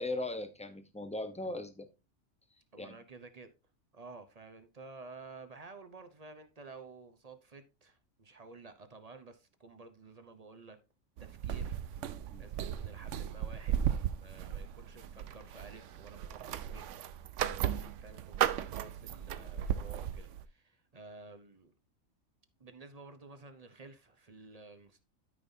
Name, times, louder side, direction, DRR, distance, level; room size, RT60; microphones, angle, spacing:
voice 1, 0.0-1.9 2.8-3.0 12.3-12.4, left 2 dB, 5° left, 0.6 m, -38 dB
voice 2, 2.7-3.5 3.9-10.8 11.2-11.8 12.4-16.9 17.2-21.7 22.6-25.0, right 3 dB, 35° right, 0.8 m, -52 dB
sound 1, 11.2-20.4, right 10 dB, 75° right, 0.9 m, -36 dB
13.0 x 5.4 x 2.7 m
omnidirectional pair, 1.3 m